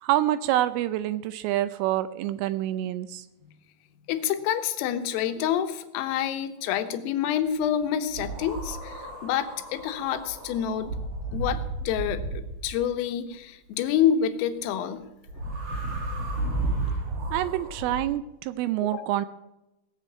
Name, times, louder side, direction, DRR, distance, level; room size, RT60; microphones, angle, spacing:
voice 1, 0.0-3.3 17.3-19.3, right 13 dB, 85° right, 13 dB, 3.0 m, -27 dB
voice 2, 4.1-11.0 11.3-12.2 12.6-15.0 18.8-19.0, left 9 dB, 85° left, 8 dB, 3.7 m, -27 dB
Wind long, 8.1-12.9 15.2-18.0, right 2 dB, 50° right, 4.5 m, -33 dB
18.0 x 6.9 x 8.5 m, 0.92 s
omnidirectional pair, 5.9 m